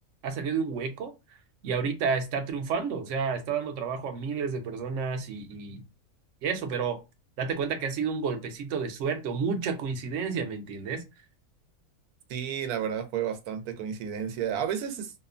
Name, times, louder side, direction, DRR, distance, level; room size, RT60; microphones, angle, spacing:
voice 1, 0.2-1.4 1.6-5.8 6.4-7.0 7.4-11.0, right 5 dB, 65° right, 0.9 m, -30 dB
voice 2, 12.3-15.1, right 8 dB, 85° right, 1.1 m, -31 dB
2.9 x 2.0 x 2.4 m
omnidirectional pair, 1.5 m